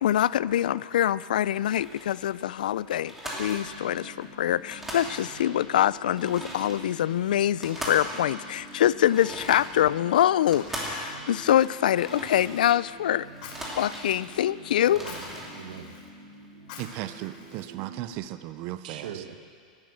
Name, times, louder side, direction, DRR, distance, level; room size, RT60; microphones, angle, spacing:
voice 1, 0.0-13.3 13.8-15.0, left 11 dB, 85° left, 20 dB, 0.3 m, -24 dB
sound 1, 1.8-2.2 2.6-2.7 3.0-4.3 4.6-5.6 6.0-12.9 13.2-14.4 14.7-15.5, equal, 5° right, 2.8 m, -39 dB
sound 2, 3.3-18.1, right 2 dB, 25° right, 3.6 m, -48 dB
Fire, 11.0-18.2, left 5 dB, 55° left, 3.0 m, -49 dB
voice 2, 14.8-15.3 15.5-15.9 18.8-19.4, right 8 dB, 80° right, 7 dB, 1.5 m, -40 dB
voice 3, 16.8-19.2, right 14 dB, 45° right, 12 dB, 0.6 m, -36 dB
16.0 x 12.0 x 6.4 m, 2.2 s
supercardioid pair, 140°, 4 cm